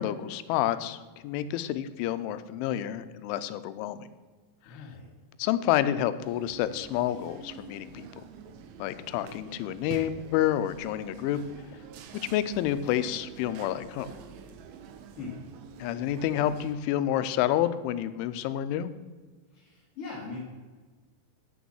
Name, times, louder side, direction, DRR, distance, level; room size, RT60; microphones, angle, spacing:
voice 1, 0.0-4.1 4.7-4.8 5.4-8.2 8.8-11.4 11.7-11.8 12.3-14.1 15.8-18.9, left 12 dB, 90° left, 12 dB, 3.0 m, -29 dB
voice 2, 4.6-5.1 15.2-15.3 19.5-20.4, left 4 dB, 50° left, -6 dB, 1.9 m, -40 dB
sound 1, 6.2-16.8, right 6 dB, 80° right, 2.9 m, -47 dB
9.9 x 6.2 x 7.0 m, 1.4 s
omnidirectional pair, 5.4 m